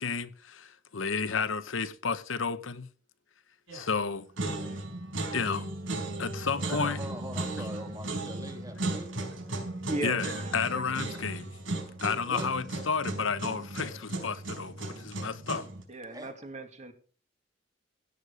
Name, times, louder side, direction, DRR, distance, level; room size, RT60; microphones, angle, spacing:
voice 1, 0.0-2.9 3.7-4.3 5.3-5.7 6.2-7.0 10.0-11.5 12.0-15.7, left 5 dB, 80° left, 0.9 m, -32 dB
sound 1, 3.7-4.0 4.4-15.8, right 2 dB, 75° right, 4.3 m, -36 dB
voice 2, 6.4-9.6 12.2-12.5 16.1-16.3, right 1 dB, 20° right, 2.6 m, -43 dB
voice 3, 9.9-11.2 15.9-16.9, right 2 dB, 35° right, 2.2 m, -37 dB
16.5 x 6.7 x 6.6 m
head